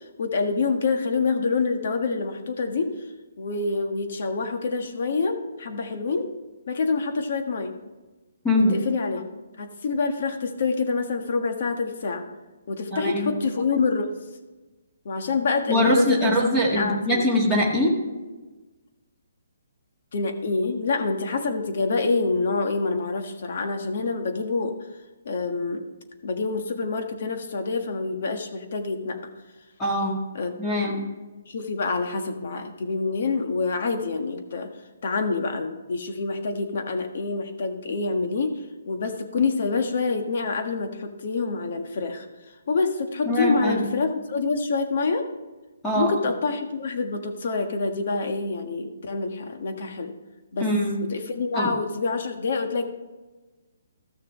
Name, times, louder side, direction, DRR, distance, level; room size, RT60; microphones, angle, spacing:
voice 1, 0.0-2.9 3.4-6.3 6.7-7.7 8.5-9.2 9.6-12.2 12.7-14.1 15.0-16.3 16.7-17.2 20.1-24.7 25.2-25.8 26.2-29.2 30.3-30.6 30.8-31.1 31.5-34.7 35.0-38.6 38.8-42.3 42.7-45.3 45.9-50.1 50.5-50.7 51.0-52.8, left 4 dB, 55° left, 5 dB, 1.5 m, -26 dB
voice 2, 12.9-13.3 15.7-17.9 29.8-30.2 30.6-31.0 43.3-43.8 45.8-46.1 50.6-51.0 51.5-51.7, left 1 dB, 10° left, -4 dB, 1.7 m, -22 dB
15.0 x 6.5 x 3.2 m, 1.2 s
hypercardioid pair, 165°, 0 cm